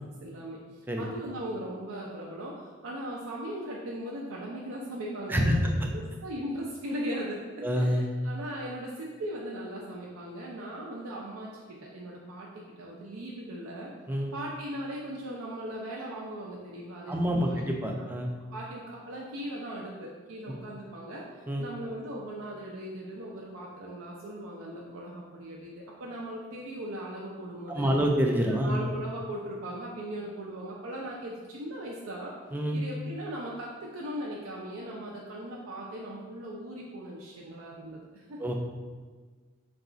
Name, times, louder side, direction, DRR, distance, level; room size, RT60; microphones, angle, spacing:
voice 1, 0.2-13.9 14.3-17.6 18.0-18.1 18.5-21.2 21.6-28.0 28.5-32.3 32.7-38.4, right 1 dB, 90° right, -3 dB, 0.5 m, -39 dB
voice 2, 5.3-5.9 7.6-8.0 14.1-14.3 17.1-18.3 21.5-21.7 27.7-28.8 32.5-32.8 38.4-38.5, equal, 10° right, 1 dB, 0.3 m, -27 dB
4.0 x 2.3 x 3.8 m, 1.4 s
head